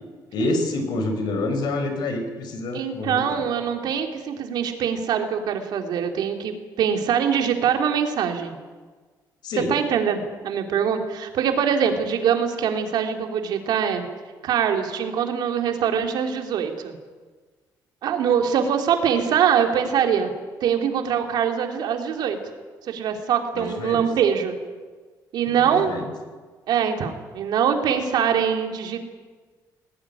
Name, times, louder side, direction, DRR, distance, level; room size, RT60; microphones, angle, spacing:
voice 1, 0.3-3.4 9.4-9.7 23.5-24.0 25.6-26.1, left 2 dB, 70° left, 7 dB, 4.7 m, -27 dB
voice 2, 2.7-8.5 9.7-14.0 14.4-16.9 18.0-20.3 20.6-22.4 22.9-24.6 25.3-25.9 26.7-29.0, right 8 dB, 70° right, 4 dB, 3.1 m, -23 dB
20.5 x 18.5 x 10.0 m, 1.4 s
cardioid pair, 145°, 7 cm